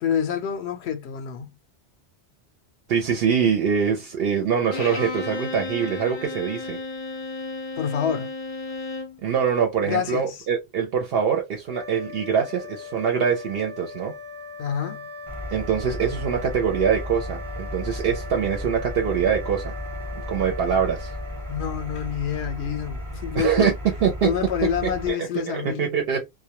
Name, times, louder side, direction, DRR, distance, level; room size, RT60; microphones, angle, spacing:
voice 1, 0.0-1.5 7.8-8.3 9.8-10.4 14.6-15.1 21.5-23.7 24.2-25.9, left 8 dB, 85° left, 0.8 m, -27 dB
voice 2, 2.9-6.8 9.2-14.1 15.5-19.8 20.3-21.1 23.4-23.7 24.0-24.3 24.8-25.2 25.5-26.3, right 7 dB, 70° right, 0.8 m, -24 dB
Bowed string instrument, 4.7-9.2, left 3 dB, 50° left, 0.3 m, -33 dB
sound 1, 11.6-22.3, left 3 dB, 50° right, 0.4 m, -40 dB
Engine, 15.3-25.1, equal, 30° right, 0.9 m, -34 dB
2.2 x 2.1 x 2.8 m
omnidirectional pair, 1.1 m